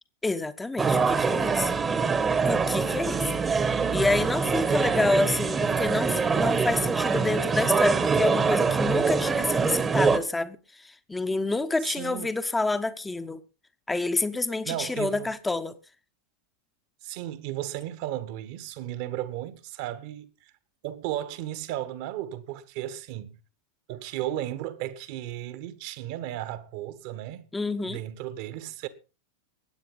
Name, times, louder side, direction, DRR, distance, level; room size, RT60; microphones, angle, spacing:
voice 1, 0.2-1.7 2.4-13.4 13.9-15.7 27.5-28.0, left 2 dB, 10° left, 1.1 m, -28 dB
sound 1, 0.8-10.2, right 5 dB, 15° right, 1.3 m, -24 dB
voice 2, 11.8-12.3 14.6-15.3 17.0-20.5 20.8-23.4 23.9-27.5 27.9-28.9, right 13 dB, 45° right, 1.5 m, -35 dB
21.0 x 9.0 x 3.9 m
figure-of-eight pair, 90°, 0 cm